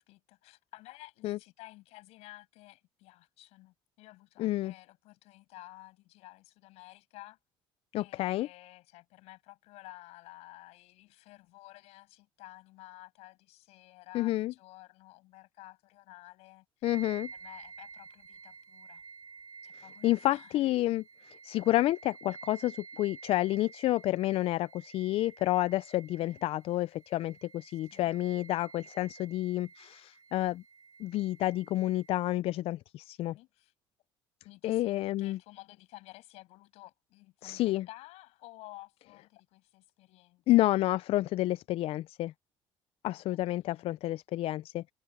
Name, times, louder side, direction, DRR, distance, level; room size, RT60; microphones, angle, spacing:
voice 1, 0.0-7.4 8.0-16.9 17.3-19.0 19.6-20.7 26.2-26.4 27.7-28.1 33.3-33.7 34.4-40.4 43.1-44.2, left 19 dB, 80° left, 8.0 m, -53 dB
voice 2, 4.4-4.7 7.9-8.5 14.1-14.5 16.8-17.3 20.0-30.6 31.0-33.4 34.6-35.4 37.4-37.9 40.5-42.3 43.0-44.9, left 16 dB, 60° left, 0.4 m, -29 dB
sound 1, 16.8-32.1, right 5 dB, 35° right, 1.4 m, -52 dB
open air
supercardioid pair, 95°, 11 cm